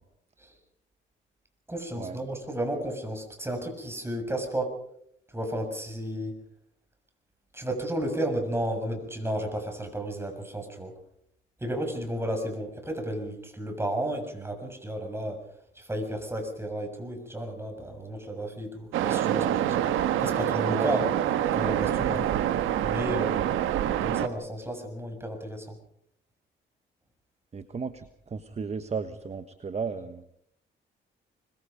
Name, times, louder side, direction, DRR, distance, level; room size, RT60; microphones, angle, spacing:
voice 1, 1.7-4.8 5.3-6.4 7.5-10.9 11.6-15.4 15.7-21.1 21.5-22.3 22.8-23.6 24.0-25.8, right 1 dB, 10° right, 4 dB, 6.8 m, -33 dB
Waves surf, 18.9-24.3, right 11 dB, 90° right, 1.4 m, -26 dB
voice 2, 27.5-30.2, right 5 dB, 35° right, 10 dB, 1.3 m, -35 dB
25.5 x 22.0 x 5.3 m, 0.72 s
cardioid pair, 90°, 20 cm